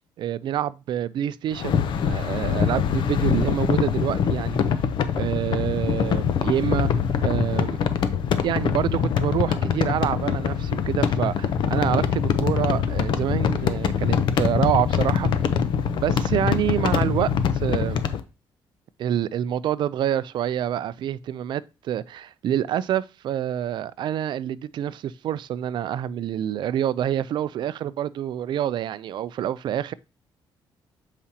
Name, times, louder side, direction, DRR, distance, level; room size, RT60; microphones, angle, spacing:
voice 1, 0.2-4.6 5.2-6.9 7.2-7.8 8.4-15.3 16.0-18.1 19.0-29.9, right 11 dB, 60° right, 0.4 m, -27 dB
sound 1, 1.5-18.2, left 7 dB, 65° left, 0.6 m, -24 dB
7.2 x 4.9 x 2.8 m
cardioid pair, 135°, 9 cm